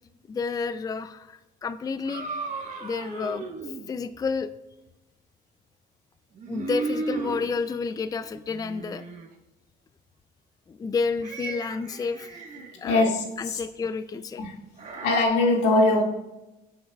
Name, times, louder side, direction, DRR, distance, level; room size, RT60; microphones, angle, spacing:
voice 1, 0.3-2.2 2.8-3.5 3.9-4.5 6.5-9.0 10.7-12.3 12.8-14.4, left 5 dB, 20° left, 0.4 m, -30 dB
sound 1, 2.0-3.9 6.3-7.5 8.3-9.3 11.2-12.8 14.8-15.3, right 4 dB, 45° right, 1.4 m, -35 dB
voice 2, 12.8-13.6 14.4-14.5 15.0-16.0, left 2 dB, 90° left, 2.1 m, -21 dB
18.5 x 7.2 x 2.4 m
cardioid pair, 110°, 17 cm